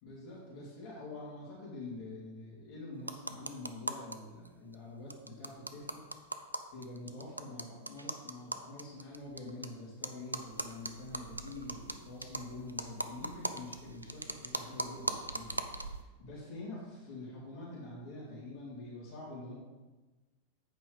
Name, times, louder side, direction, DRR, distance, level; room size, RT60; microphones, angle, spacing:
voice 1, 0.0-6.0 6.7-15.6 15.9-19.6, left 2 dB, 45° left, -6 dB, 2.9 m, -46 dB
sound 1, 3.0-4.2 4.4-4.5 4.7-4.8 5.1-9.7 10.0-16.0, right 2 dB, 85° right, 0.4 m, -40 dB
8.4 x 5.0 x 5.2 m, 1.2 s
figure-of-eight pair, 90°, 0 cm